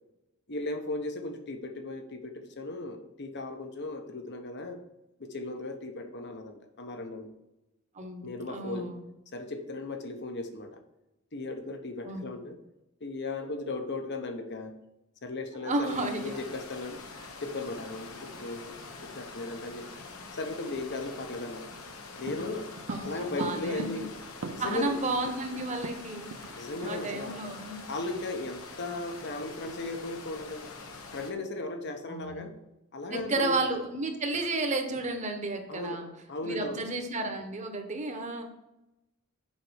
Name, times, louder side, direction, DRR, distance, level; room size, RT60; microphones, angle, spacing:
voice 1, 0.5-4.8 5.2-7.3 8.2-8.9 9.3-10.8 11.3-12.6 13.0-14.7 15.2-17.0 17.4-19.9 20.3-21.7 22.2-22.7 23.0-24.1 24.5-25.0 26.5-27.4 27.9-30.7 31.1-32.6 32.9-33.5 35.7-36.0 36.3-36.8, left 2 dB, 55° left, 6 dB, 1.1 m, -36 dB
voice 2, 7.9-9.0 12.0-12.2 15.6-16.4 22.9-23.9 24.6-27.8 32.1-32.5 33.1-36.1 36.4-38.4, right 2 dB, 35° right, 5 dB, 1.2 m, -32 dB
sound 1, 15.8-31.3, left 3 dB, 80° left, 1.2 m, -45 dB
sound 2, 22.3-24.9 25.2-25.3 25.5-26.6 26.8-27.0 27.4-27.6, right 2 dB, 65° right, 0.7 m, -40 dB
7.5 x 5.4 x 6.4 m, 0.92 s
head